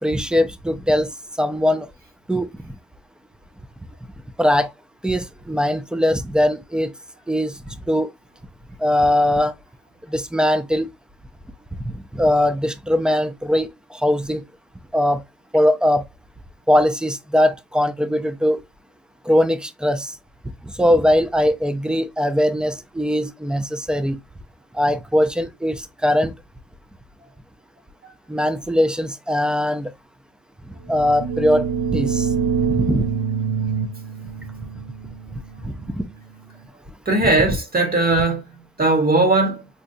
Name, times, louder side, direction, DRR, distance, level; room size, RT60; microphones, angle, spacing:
voice 1, 0.0-1.9 2.3-2.5 4.4-4.7 5.0-6.9 7.3-7.6 7.9-8.1 8.8-9.5 10.1-10.9 11.9-14.4 14.9-15.2 15.5-16.0 16.7-18.6 19.3-20.1 20.6-24.2 24.7-26.3 28.3-29.9 30.9-32.3 32.7-33.1 35.3-36.0 37.2-37.3, left 1 dB, 5° right, 0.5 m, -20 dB
sound 1, 30.9-36.5, right 6 dB, 50° right, 0.7 m, -26 dB
voice 2, 37.1-38.4 38.8-39.6, right 2 dB, 30° right, 1.3 m, -18 dB
4.1 x 2.3 x 2.6 m
cardioid pair, 90°, 30 cm